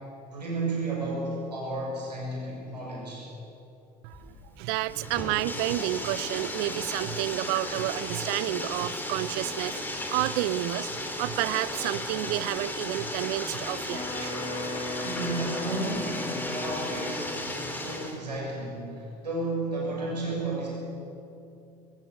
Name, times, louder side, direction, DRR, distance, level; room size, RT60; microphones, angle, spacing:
voice 1, 0.3-3.3 15.0-20.7, right 2 dB, 80° right, -3 dB, 6.6 m, -33 dB
voice 2, 4.0-14.3, right 16 dB, 50° right, 19 dB, 0.6 m, -30 dB
Bathtub (filling or washing), 4.1-18.2, left 1 dB, 10° left, 3.0 m, -35 dB
Wind instrument woodwind instrument, 13.8-17.6, left 2 dB, 35° left, 2.7 m, -37 dB
22.0 x 16.0 x 8.0 m, 2.7 s
figure-of-eight pair, 70°, 21 cm